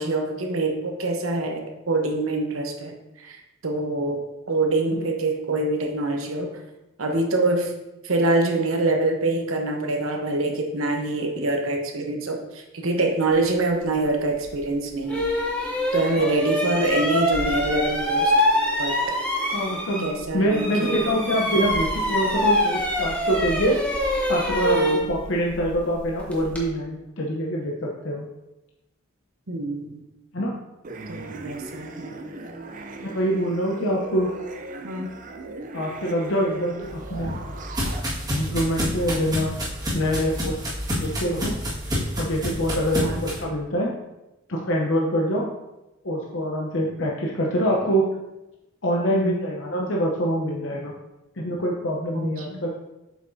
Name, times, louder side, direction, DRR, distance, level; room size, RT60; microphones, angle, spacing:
voice 1, 0.0-1.6 1.9-3.4 3.6-6.5 7.0-7.7 8.0-15.3 15.9-18.3 18.8-19.0 20.0-21.0 24.7-25.0 29.5-30.0 31.1-32.1 34.8-35.1 43.0-43.2 49.1-49.4 52.1-52.6, right 2 dB, 85° right, 3 dB, 1.0 m, -25 dB
sound 1, 14.4-14.6 15.1-20.2 20.5-26.7, left 1 dB, 5° left, 0.9 m, -25 dB
voice 2, 19.5-23.8 24.3-28.2 30.3-30.5 33.0-34.3 35.7-37.4 38.3-39.5 39.9-40.6 40.9-41.5 42.2-43.9 44.5-45.5 46.0-48.0 48.8-50.9 51.4-52.7, equal, 65° left, -2 dB, 0.8 m, -25 dB
sound 2, 30.8-38.0, right 2 dB, 40° right, 0.5 m, -38 dB
sound 3, 36.8-43.4, equal, 20° right, 1.7 m, -29 dB
7.6 x 5.5 x 2.7 m, 0.97 s
head